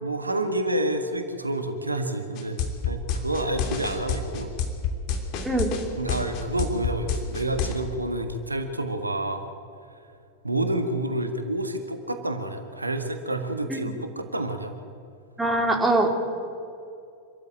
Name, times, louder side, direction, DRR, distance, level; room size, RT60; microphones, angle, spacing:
voice 1, 0.0-4.5 6.0-9.5 10.4-14.7, right 1 dB, 80° right, 7 dB, 1.7 m, -29 dB
sound 1, 2.4-7.7, left 6 dB, 40° left, 2.9 m, -27 dB
voice 2, 15.4-16.2, right 2 dB, 10° right, 3 dB, 2.9 m, -22 dB
26.0 x 14.0 x 9.2 m, 2.5 s
figure-of-eight pair, 90°, 0 cm